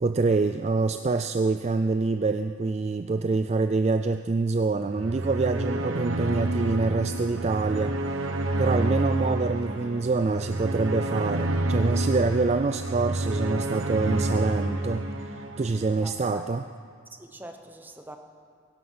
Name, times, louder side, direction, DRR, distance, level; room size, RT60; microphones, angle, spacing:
voice 1, 0.0-16.6, right 3 dB, 30° right, 8 dB, 0.3 m, -26 dB
sound 1, 4.9-16.2, right 1 dB, 75° right, 1.2 m, -29 dB
voice 2, 16.0-16.5 17.2-18.2, right 1 dB, 10° right, 5 dB, 0.9 m, -43 dB
22.5 x 11.5 x 5.6 m, 2.3 s
head